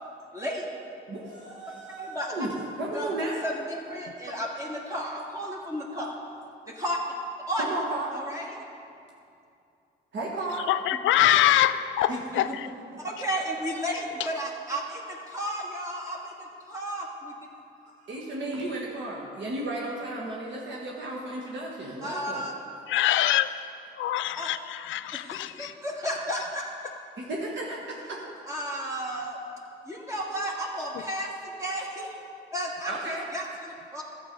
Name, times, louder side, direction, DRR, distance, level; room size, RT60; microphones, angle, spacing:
voice 1, 0.3-0.7 2.0-2.3 2.9-6.1 6.7-7.0 7.5-7.6 8.1-8.5 13.0-17.3 22.0-22.5 24.3-24.5 25.1-26.6 28.5-29.4 29.8-32.1 32.5-34.0, equal, 15° right, -3 dB, 1.8 m, -33 dB
voice 2, 1.1-3.4 7.6-8.1 10.1-10.7 12.1-12.6 18.0-22.4 23.1-23.6 27.2-28.2 32.9-33.2, right 2 dB, 65° right, -2 dB, 1.5 m, -34 dB
voice 3, 10.7-12.7 22.9-23.5 24.0-25.7, left 13 dB, 75° left, 13 dB, 0.5 m, -24 dB
12.0 x 7.5 x 5.2 m, 2.6 s
cardioid pair, 90°, 20 cm